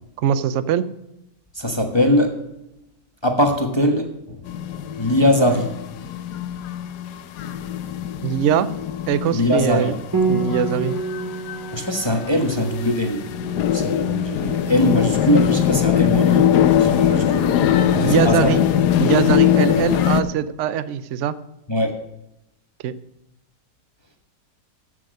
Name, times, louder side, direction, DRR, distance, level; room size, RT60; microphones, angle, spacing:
voice 1, 0.2-0.9 8.2-8.7 9.1-9.9 10.3-10.9 18.0-18.6 19.0-21.3 22.8-22.9, right 9 dB, 70° right, 14 dB, 0.7 m, -22 dB
voice 2, 1.5-2.4 3.2-4.4 5.0-5.7 7.4-7.5 9.3-10.0 11.7-13.3 13.7-17.6 17.9-18.6 21.7-22.0, left 1 dB, 20° left, 3 dB, 1.0 m, -21 dB
sound 1, 4.4-20.2, left 10 dB, 70° left, 1.2 m, -21 dB
Piano, 10.1-19.5, right 5 dB, 20° right, 0.6 m, -31 dB
14.5 x 6.3 x 6.4 m, 0.88 s
omnidirectional pair, 2.0 m